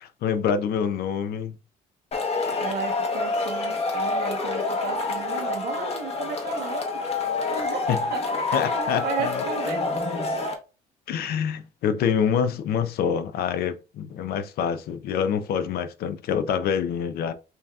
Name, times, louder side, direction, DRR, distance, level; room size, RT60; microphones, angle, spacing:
voice 1, 0.2-1.6 7.9-8.0 8.5-9.4 11.1-17.3, left 7 dB, 65° left, 0.5 m, -26 dB
Male speech man speaking / Shout / Clapping, 2.1-10.5, left 3 dB, 35° left, 1.0 m, -27 dB
voice 2, 2.6-7.0 7.5-7.8 8.1-8.2 8.5-9.8, right 6 dB, 70° right, 1.4 m, -34 dB
5.4 x 2.7 x 2.3 m
cardioid pair, 110°, 17 cm